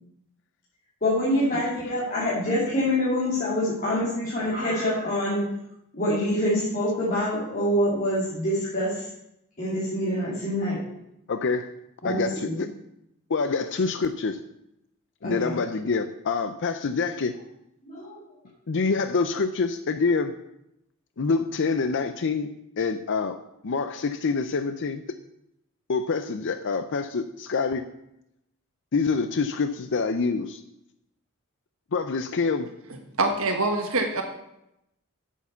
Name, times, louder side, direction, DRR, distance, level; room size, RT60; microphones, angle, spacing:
voice 1, 1.0-5.4 5.9-9.1 9.6-10.8 12.0-12.6 15.2-15.6 17.8-18.2, left 1 dB, 40° left, -8 dB, 2.9 m, -26 dB
voice 2, 11.3-11.7 12.0-12.7 13.3-14.4 15.2-17.3 18.7-20.3 21.2-23.4 23.6-25.0 25.9-27.8 28.9-30.6 31.9-32.7, left 4 dB, 55° left, 10 dB, 0.5 m, -26 dB
voice 3, 33.2-34.2, right 2 dB, 65° right, 4 dB, 1.4 m, -24 dB
8.8 x 7.4 x 6.9 m, 0.83 s
head